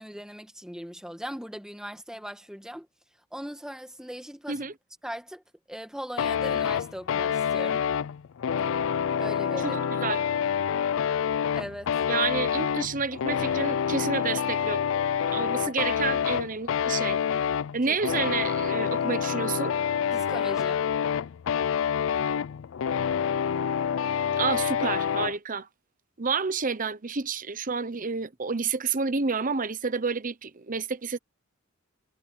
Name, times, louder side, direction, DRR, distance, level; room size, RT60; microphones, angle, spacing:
voice 1, 0.0-2.9 3.3-4.7 5.0-5.4 5.7-7.9 9.2-9.8 11.5-12.0 17.8-18.0 20.1-20.8, equal, 5° right, 1.7 m, -39 dB
sound 1, 6.2-25.4, left 8 dB, 65° left, 0.4 m, -27 dB
voice 2, 9.6-10.2 12.1-14.8 15.3-17.2 17.7-19.7 24.4-25.7 26.2-31.2, right 5 dB, 40° right, 0.9 m, -29 dB
head